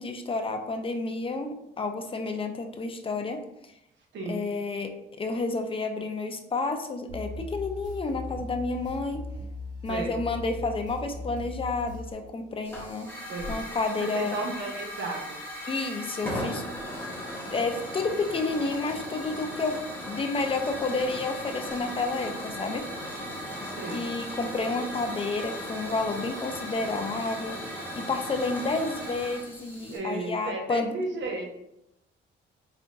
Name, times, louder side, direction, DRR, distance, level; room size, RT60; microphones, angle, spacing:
voice 1, 0.0-3.4 4.3-4.9 5.2-9.2 9.8-13.1 13.5-14.4 15.7-16.6 17.5-22.8 23.1-23.2 23.9-30.9, left 3 dB, 25° left, 5 dB, 0.6 m, -30 dB
voice 2, 4.1-4.4 9.9-10.2 13.3-13.6 14.0-15.4 23.8-24.0 29.9-31.5, right 3 dB, 70° right, 1 dB, 1.1 m, -33 dB
sound 1, 7.1-12.1, left 2 dB, 40° right, 1.5 m, -38 dB
Hiss / Fire, 12.6-30.0, equal, 10° left, 1.4 m, -37 dB
4.4 x 3.4 x 2.6 m, 0.80 s
cardioid pair, 90°, 20 cm